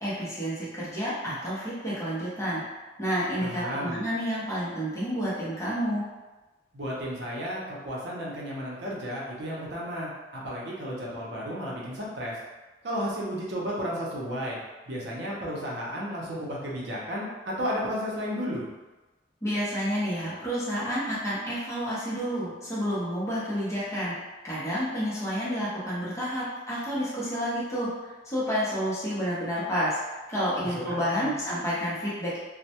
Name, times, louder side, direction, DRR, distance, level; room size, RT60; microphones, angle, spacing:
voice 1, 0.0-2.6 3.0-6.0 19.4-24.1 24.4-32.4, equal, 15° left, -9 dB, 0.7 m, -30 dB
voice 2, 3.4-4.0 6.7-12.4 12.8-14.6 14.9-18.7 30.9-31.3, equal, 60° right, -4 dB, 0.6 m, -33 dB
2.2 x 2.0 x 2.8 m, 1.2 s
head